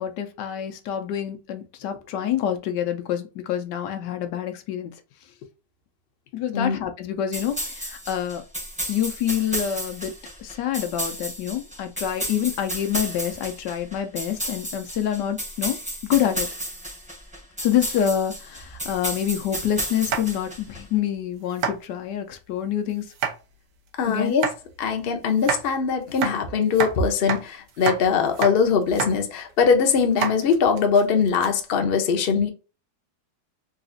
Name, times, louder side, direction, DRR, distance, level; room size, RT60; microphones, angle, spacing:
voice 1, 0.0-4.9 6.3-8.4 8.9-10.1 10.4-15.8 16.1-16.5 17.6-23.1 24.1-24.4, left 10 dB, 85° left, 1.3 m, -27 dB
sound 1, 7.3-20.8, right 1 dB, 5° right, 0.7 m, -33 dB
sound 2, 20.0-20.6 21.0-21.2 21.5-21.8 23.1-23.4 24.3-24.6 25.3-25.6 26.1-26.9 27.3-27.4 27.7-28.0 28.3-28.5 28.8-29.1 29.5-29.6 30.1-31.5, right 7 dB, 80° right, 1.3 m, -28 dB
voice 2, 24.0-24.5 24.8-32.5, left 6 dB, 50° left, 0.7 m, -21 dB
4.0 x 2.4 x 2.5 m
omnidirectional pair, 1.8 m